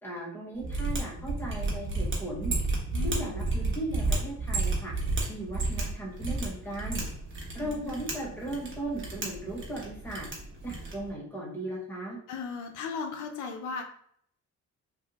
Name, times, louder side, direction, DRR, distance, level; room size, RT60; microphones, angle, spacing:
voice 1, 0.0-2.5 3.0-4.9 5.3-7.0 7.5-10.3 10.6-12.2, right 1 dB, 5° left, -4 dB, 1.3 m, -37 dB
Mechanisms, 0.6-11.1, right 2 dB, 40° right, 1.3 m, -32 dB
voice 2, 2.9-3.3 7.6-8.1 12.3-13.8, left 5 dB, 80° left, 4 dB, 0.6 m, -37 dB
3.3 x 2.6 x 2.8 m, 0.67 s
cardioid pair, 90°, 30 cm